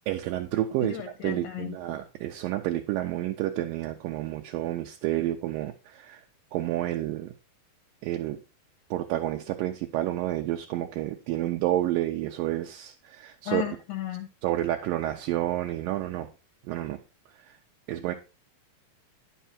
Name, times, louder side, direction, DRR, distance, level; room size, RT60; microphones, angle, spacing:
voice 1, 0.1-6.2 6.5-7.3 8.0-8.4 8.9-13.6 14.4-16.3 16.7-17.0 17.5-17.6 17.9-18.1, right 14 dB, 80° right, 2.3 m, -30 dB
voice 2, 0.8-1.8 13.5-14.3, left 13 dB, 75° left, 2.2 m, -34 dB
10.0 x 5.7 x 4.2 m
omnidirectional pair, 4.2 m